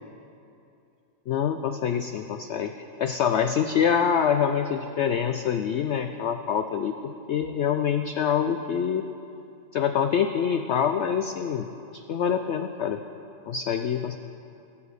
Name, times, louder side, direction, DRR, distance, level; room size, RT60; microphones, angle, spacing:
voice 1, 1.3-9.0 9.7-11.7 11.9-13.0 13.5-14.2, left 8 dB, 85° left, 8 dB, 0.6 m, -25 dB
17.5 x 7.0 x 6.6 m, 2.7 s
omnidirectional pair, 1.7 m